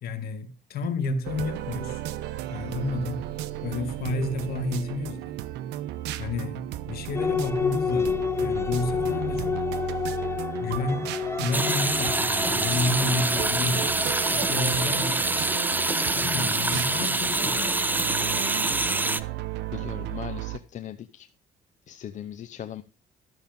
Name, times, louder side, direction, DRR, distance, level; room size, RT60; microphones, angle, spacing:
voice 1, 0.0-2.0 2.5-3.3 3.6-5.4 6.2-9.7 10.6-13.9 14.3-15.3 16.1-17.8, left 2 dB, 65° left, 2.0 m, -30 dB
sound 1, 1.2-20.6, right 13 dB, 85° right, 0.9 m, -35 dB
sound 2, 7.1-19.1, left 6 dB, 15° left, 1.0 m, -31 dB
sound 3, 11.5-19.2, right 2 dB, 10° right, 0.6 m, -25 dB
voice 2, 19.7-21.3 21.9-22.8, left 10 dB, 45° left, 0.7 m, -38 dB
12.5 x 7.2 x 5.2 m
cardioid pair, 110°, 17 cm